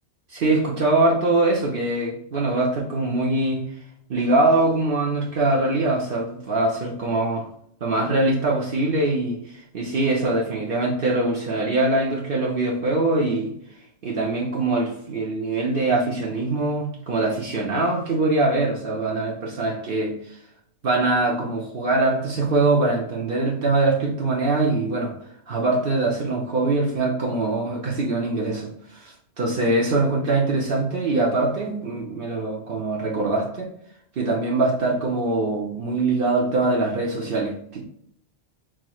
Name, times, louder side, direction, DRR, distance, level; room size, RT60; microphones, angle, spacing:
voice 1, 0.3-3.6 4.1-7.5 7.8-13.5 14.0-20.4 20.8-25.1 25.5-33.7 34.2-37.8, right 2 dB, 55° right, -3 dB, 0.9 m, -23 dB
6.1 x 3.0 x 2.3 m, 0.71 s
omnidirectional pair, 1.1 m